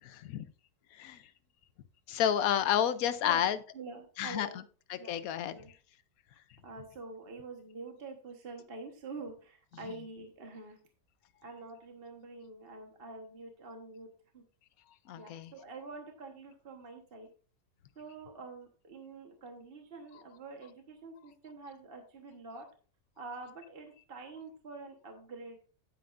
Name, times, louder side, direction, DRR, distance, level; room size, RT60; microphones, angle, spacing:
voice 1, 0.0-0.4 0.9-1.2 2.1-3.6 4.2-4.5 4.9-5.6 15.1-15.5, left 10 dB, 65° left, 12 dB, 1.0 m, -30 dB
voice 2, 3.2-4.6 5.0-5.1 5.5-5.7 6.6-10.8 11.4-14.4 15.2-17.3 17.9-22.7 23.2-25.6, right 3 dB, 35° right, 3 dB, 1.3 m, -46 dB
10.0 x 9.2 x 2.5 m, 0.38 s
omnidirectional pair, 1.9 m